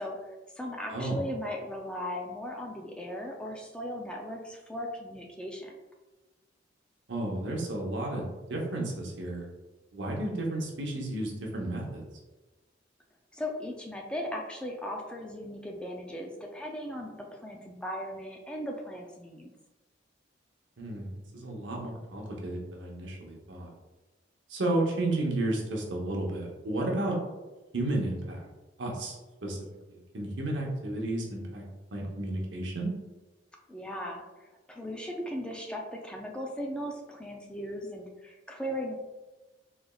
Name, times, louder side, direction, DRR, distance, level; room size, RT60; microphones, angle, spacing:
voice 1, 0.0-5.7 13.3-19.5 33.7-39.0, equal, 5° left, 0 dB, 0.4 m, -37 dB
voice 2, 7.1-9.5 9.9-12.0 20.8-23.7 24.5-27.2 27.7-28.4 28.8-29.6 29.9-31.6 31.9-32.9, right 1 dB, 85° right, -1 dB, 0.8 m, -32 dB
3.9 x 3.3 x 2.3 m, 1.1 s
head